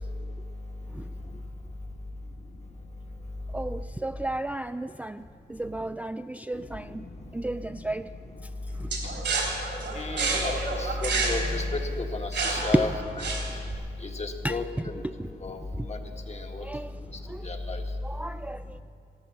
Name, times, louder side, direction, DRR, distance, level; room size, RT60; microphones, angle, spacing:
voice 1, 3.5-7.0 7.3-8.1 8.8-8.9 12.7-12.9 14.4-15.3 15.8-15.9 16.6-16.9 17.3-17.4 18.0-18.8, right 2 dB, 10° right, 10 dB, 0.3 m, -32 dB
sound 1, 8.9-13.8, right 3 dB, 85° right, 3.7 m, -29 dB
voice 2, 9.9-12.9 13.2-13.3 14.0-14.9 15.4-16.0 16.3-16.6 17.4-17.8, left 2 dB, 35° left, 4 dB, 1.6 m, -32 dB
15.0 x 13.5 x 6.4 m, 2.4 s
cardioid pair, 70°, 18 cm